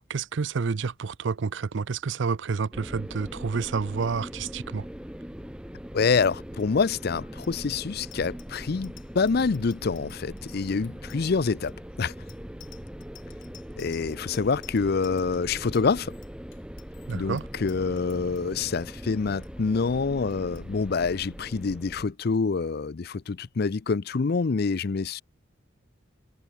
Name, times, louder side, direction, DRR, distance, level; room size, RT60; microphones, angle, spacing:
voice 1, 0.1-4.9 17.1-17.5, right 5 dB, 65° right, 0.5 m, -29 dB
sound 1, 2.7-22.0, equal, 5° right, 0.9 m, -41 dB
voice 2, 5.9-11.7 12.0-12.1 13.8-16.1 17.1-25.2, left 4 dB, 55° left, 0.5 m, -26 dB
Bicycle bell, 6.5-18.8 19.2-19.5 19.7-20.0 20.3-20.6, left 13 dB, 75° left, 7.9 m, -54 dB
head